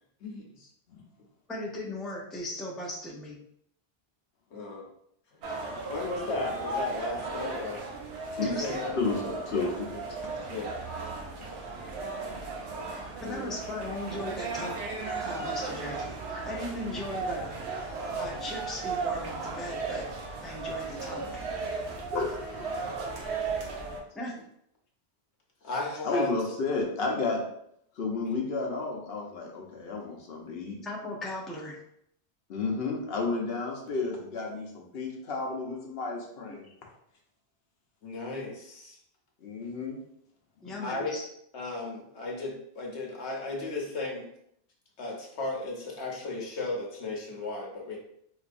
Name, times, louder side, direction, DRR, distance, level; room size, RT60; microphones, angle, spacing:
voice 1, 0.2-0.7 4.5-4.8 5.3-7.8 8.3-9.0 9.5-9.7 10.5-10.8 13.2-13.5 25.6-26.3 38.0-39.0 40.8-41.1 41.5-44.3 45.0-48.0, left 2 dB, 90° left, -1 dB, 1.2 m, -35 dB
voice 2, 1.5-3.4 8.4-8.8 13.2-14.8 15.2-17.5 18.2-20.0 20.4-21.2 24.1-24.4 30.8-31.8 40.6-41.2, left 1 dB, ahead, -3 dB, 0.4 m, -37 dB
sound 1, 5.4-24.0, right 3 dB, 85° right, 1.0 m, -35 dB
voice 3, 9.0-9.7 16.9-17.0 22.1-23.1 26.0-27.4 28.0-30.8 32.5-36.7 39.4-40.0 40.6-40.7, left 3 dB, 65° left, 0 dB, 1.0 m, -32 dB
4.1 x 2.7 x 2.5 m, 0.71 s
omnidirectional pair, 1.1 m